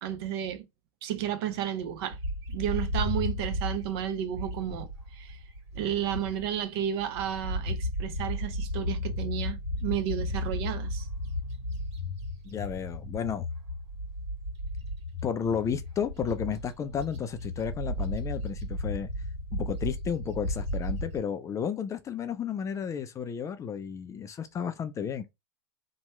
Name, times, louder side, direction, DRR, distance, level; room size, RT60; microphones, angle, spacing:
voice 1, 0.0-0.6 1.0-2.2 2.5-5.4 5.7-11.1, right 10 dB, 60° right, 0.7 m, -32 dB
Bird, 2.1-6.6 7.0-21.2, left 1 dB, 80° right, 1.2 m, -34 dB
voice 2, 12.4-13.5 15.2-19.1 19.5-25.2, left 7 dB, 20° left, 0.4 m, -32 dB
2.9 x 2.2 x 3.0 m
hypercardioid pair, 115°, 14 cm